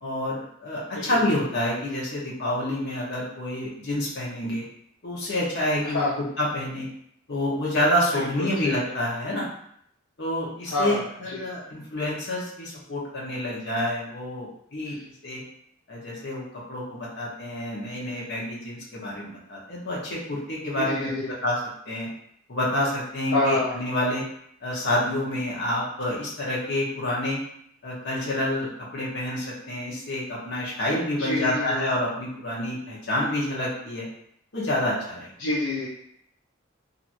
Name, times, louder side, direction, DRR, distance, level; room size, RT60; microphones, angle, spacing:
voice 1, 0.0-4.6 5.0-6.1 6.4-6.9 7.3-9.5 10.2-15.0 15.2-15.4 15.9-21.1 21.4-21.6 21.9-22.1 22.5-24.2 24.6-27.4 27.8-34.1 34.5-35.3, left 1 dB, 60° left, -5 dB, 1.0 m, -28 dB
voice 2, 8.1-8.9 10.7-11.4 20.8-21.3 23.3-23.7 31.2-31.9 35.4-35.9, left 2 dB, 80° left, -7 dB, 0.7 m, -27 dB
2.9 x 2.6 x 2.6 m, 0.69 s
head